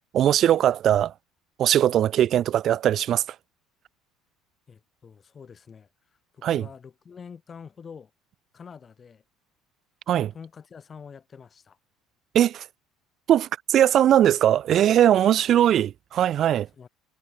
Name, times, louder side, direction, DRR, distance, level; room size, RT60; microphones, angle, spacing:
voice 1, 0.1-1.1 1.6-3.4 6.4-6.7 10.1-10.3 12.3-12.7 13.3-16.7, right 11 dB, 50° right, 0.6 m, -20 dB
voice 2, 4.7-5.9 6.3-8.1 8.5-9.2 10.3-11.8 16.8-16.9, left 6 dB, 30° left, 6.6 m, -45 dB
cardioid pair, 120°, 0 cm